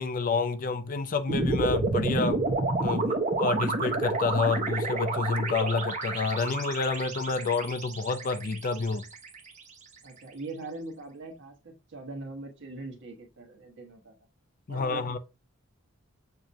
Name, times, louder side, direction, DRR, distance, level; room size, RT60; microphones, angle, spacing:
voice 1, 0.0-2.4 2.8-9.0 14.7-15.2, left 4 dB, 40° left, 0.5 m, -29 dB
sound 1, 1.3-9.6, right 3 dB, 35° right, 1.0 m, -30 dB
voice 2, 10.0-14.1 14.7-15.2, right 2 dB, 60° right, 1.4 m, -42 dB
6.8 x 2.9 x 2.6 m
head